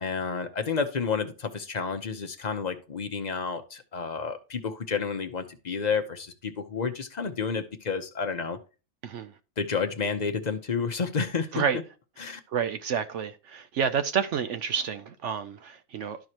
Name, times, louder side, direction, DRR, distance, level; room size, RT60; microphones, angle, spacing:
voice 1, 0.0-8.6 9.6-11.6 12.2-12.4, left 5 dB, 40° left, 0.6 m, -30 dB
voice 2, 9.0-9.3 11.5-11.8 12.5-16.2, right 7 dB, 65° right, 0.8 m, -29 dB
12.5 x 4.7 x 2.9 m
omnidirectional pair, 1.6 m